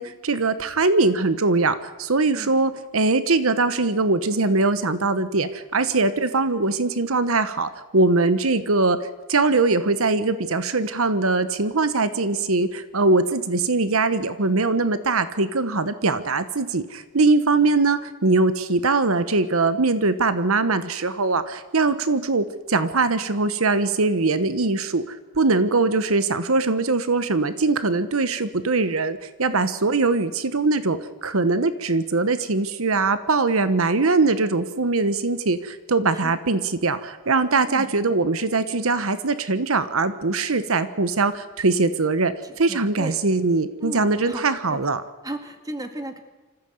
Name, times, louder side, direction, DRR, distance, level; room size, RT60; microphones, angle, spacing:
voice 1, 0.0-9.0 9.3-42.3 42.6-45.0, right 3 dB, 85° right, 12 dB, 1.1 m, -22 dB
voice 2, 42.4-43.2 43.8-44.4 44.7-44.8 45.2-46.2, right 1 dB, 15° right, 7 dB, 1.8 m, -35 dB
26.0 x 15.0 x 7.9 m, 1.2 s
head